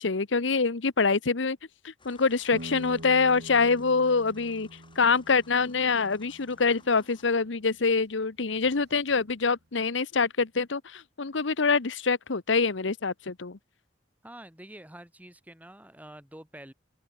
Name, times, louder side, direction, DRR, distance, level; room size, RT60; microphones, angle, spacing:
voice 1, 0.0-1.6 1.8-4.7 5.0-13.6, left 4 dB, 85° left, 1.0 m, -25 dB
sound 1, 2.0-7.4, left 4 dB, 25° left, 5.8 m, -59 dB
sound 2, 2.5-8.1 8.6-9.5, right 1 dB, 60° right, 3.9 m, -46 dB
voice 2, 14.2-16.7, right 1 dB, 10° right, 7.1 m, -47 dB
open air
head